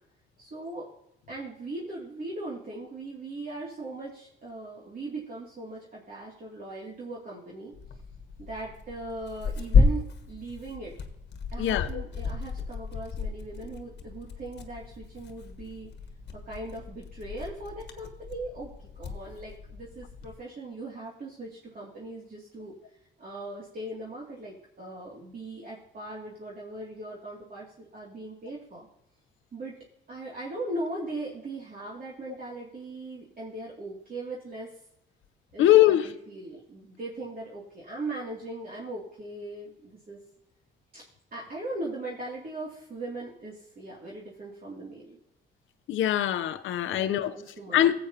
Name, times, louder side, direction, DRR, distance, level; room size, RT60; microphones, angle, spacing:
voice 1, 0.4-0.9 1.3-7.7 8.4-10.9 11.5-15.9 16.4-18.7 19.0-22.7 23.2-28.9 29.5-29.7 30.1-34.7 35.5-40.2 40.9-41.0 41.3-45.2 46.9-47.9, right 2 dB, 45° right, -5 dB, 2.5 m, -39 dB
Tearing, 7.7-20.3, left 4 dB, 60° left, 1.3 m, -31 dB
voice 2, 11.6-12.0 35.6-36.0 45.9-47.3 47.7-47.9, left 13 dB, 80° left, 11 dB, 0.7 m, -22 dB
16.0 x 8.1 x 2.8 m, 0.78 s
cardioid pair, 90°, 20 cm